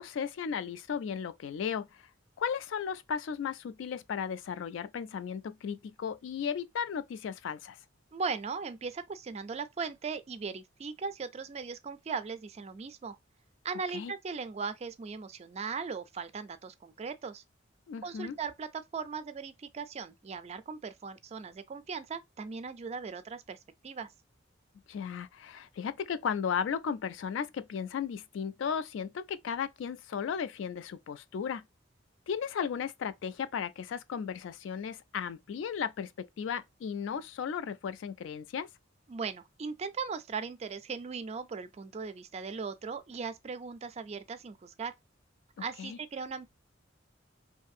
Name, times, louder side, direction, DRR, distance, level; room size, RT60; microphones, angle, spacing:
voice 1, 0.0-2.0 2.4-7.8 13.9-14.1 17.9-18.4 24.9-31.6 32.3-38.7 45.8-46.0, left 7 dB, 70° left, 0.3 m, -35 dB
voice 2, 8.1-13.2 13.6-17.4 18.0-23.6 23.8-24.1 39.1-44.9 45.6-46.5, right 5 dB, 35° right, 0.3 m, -38 dB
2.6 x 2.6 x 2.3 m
head